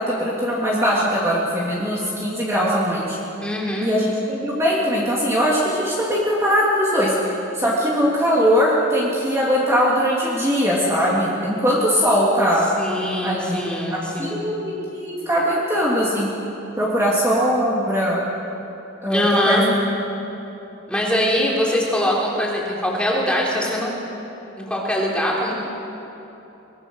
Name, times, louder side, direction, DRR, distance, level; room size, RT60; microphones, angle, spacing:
voice 1, 0.1-3.2 3.8-7.1 7.5-12.7 13.2-13.6 14.2-16.3 16.8-18.2 19.0-19.7, equal, 15° right, -6 dB, 2.9 m, -20 dB
voice 2, 3.4-3.9 12.8-14.4 19.1-19.6 20.9-24.0 24.6-25.5, left 1 dB, 5° left, -4 dB, 3.8 m, -22 dB
23.5 x 21.5 x 6.4 m, 3.0 s
head